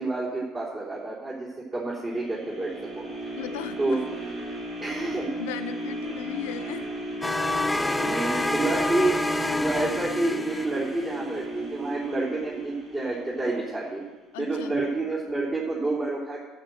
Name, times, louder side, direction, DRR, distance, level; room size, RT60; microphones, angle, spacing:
voice 1, 0.0-1.5 1.7-3.1 3.8-4.0 4.8-5.3 7.8-9.2 9.5-14.0 14.4-16.4, right 2 dB, 30° right, -5 dB, 3.7 m, -29 dB
sound 1, 2.1-14.2 14.7-14.8, right 1 dB, 55° right, 4.7 m, -35 dB
voice 2, 3.4-4.0 5.3-6.9 14.3-14.8, left 11 dB, 75° left, 9 dB, 0.8 m, -36 dB
sound 2, 7.2-11.1, left 2 dB, 10° left, 0.4 m, -28 dB
13.0 x 6.7 x 7.7 m, 1.2 s
hypercardioid pair, 60°, 0 cm